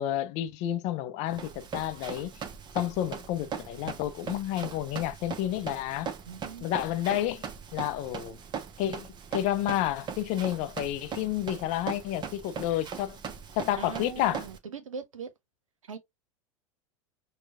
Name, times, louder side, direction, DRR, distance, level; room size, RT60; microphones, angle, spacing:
voice 1, 0.0-2.3 2.7-6.1 6.6-7.5 7.7-8.4 8.8-13.2 13.6-14.4, left 12 dB, 40° left, 0.6 m, -30 dB
Run, 1.3-14.6, right 7 dB, 25° right, 0.8 m, -40 dB
voice 2, 6.3-6.7 13.8-15.3 15.8-16.0, right 6 dB, 75° right, 0.9 m, -40 dB
6.1 x 2.3 x 2.4 m
figure-of-eight pair, 80°, 17 cm